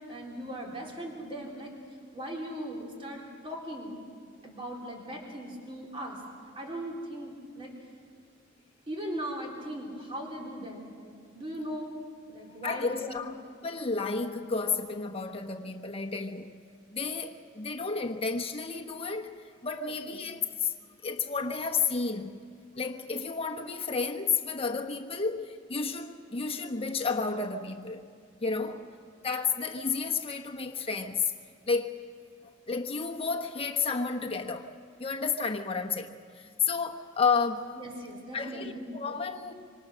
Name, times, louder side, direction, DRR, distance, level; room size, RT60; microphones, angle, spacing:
voice 1, 0.0-1.7 2.1-4.0 4.4-6.2 6.6-7.7 8.9-12.0 12.3-13.2 20.1-20.2 28.4-28.5 37.7-38.9, equal, 30° right, 3.7 m, -39 dB
voice 2, 12.6-13.3 13.6-16.5 16.9-20.7 21.0-22.4 22.7-28.1 28.4-28.8 29.2-31.3 31.7-32.1 32.4-34.7 35.0-37.7 38.3-39.5, left 5 dB, 30° left, 1.1 m, -31 dB
26.0 x 25.0 x 6.3 m
head